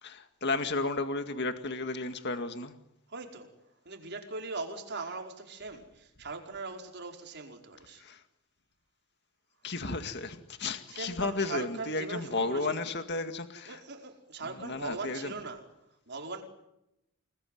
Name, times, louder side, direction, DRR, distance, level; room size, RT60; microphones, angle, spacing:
voice 1, 0.0-2.7 8.0-8.2 9.6-13.8 14.6-15.3, left 3 dB, 50° left, 7 dB, 2.0 m, -33 dB
voice 2, 3.1-3.5 3.8-8.0 10.9-12.9 13.7-15.7 16.1-16.4, right 3 dB, 50° right, 3 dB, 5.0 m, -40 dB
29.5 x 21.0 x 9.3 m, 0.85 s
head